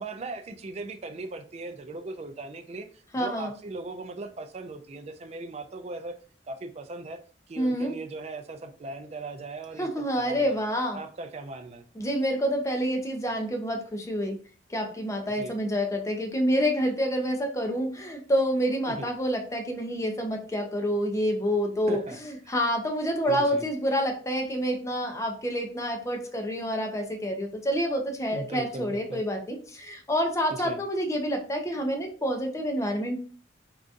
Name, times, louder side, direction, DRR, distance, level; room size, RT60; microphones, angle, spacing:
voice 1, 0.0-6.1 6.5-7.2 7.5-9.9 10.2-10.6 10.9-11.8 15.3-15.5 18.9-19.1 21.9-22.2 23.3-23.6 28.3-29.2 30.6-30.8, right 2 dB, 35° right, 8 dB, 0.3 m, -38 dB
voice 2, 3.1-3.5 7.6-8.0 9.8-11.0 12.0-14.4 14.7-33.2, equal, 15° left, 3 dB, 0.5 m, -28 dB
3.8 x 2.4 x 2.5 m, 0.41 s
head